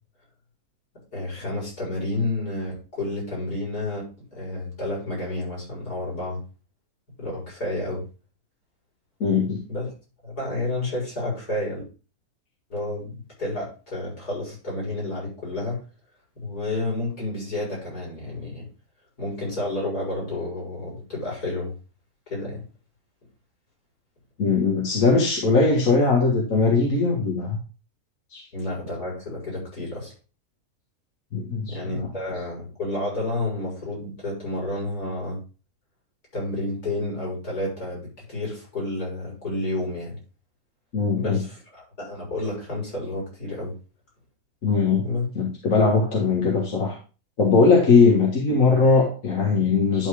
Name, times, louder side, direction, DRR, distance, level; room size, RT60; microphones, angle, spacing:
voice 1, 1.1-6.4 7.2-8.1 9.7-9.9 10.2-11.8 12.7-15.8 16.4-18.7 19.2-21.7 22.3-22.6 28.5-30.1 31.7-35.4 36.3-40.2 41.2-43.7 45.0-45.3, left 2 dB, 75° left, -3 dB, 5.6 m, -30 dB
voice 2, 9.2-9.6 24.4-27.6 28.3-28.4 31.3-32.1 40.9-41.4 44.6-45.1 45.4-47.0 47.4-50.1, left 4 dB, 60° left, -1 dB, 1.9 m, -20 dB
11.0 x 4.1 x 4.8 m, 0.33 s
omnidirectional pair, 1.6 m